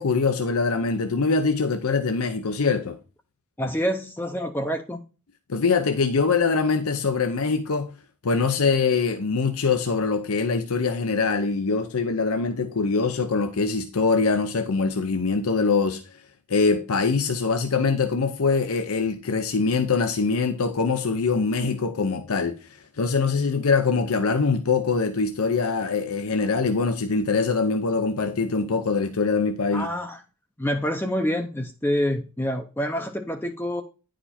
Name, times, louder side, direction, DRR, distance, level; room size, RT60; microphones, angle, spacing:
voice 1, 0.0-3.0 5.5-7.9 8.2-16.1 16.5-29.9, left 4 dB, 80° left, 0.7 m, -23 dB
voice 2, 3.6-5.0 29.7-30.2 30.6-33.8, equal, 10° left, 0.6 m, -27 dB
10.0 x 5.0 x 4.2 m
head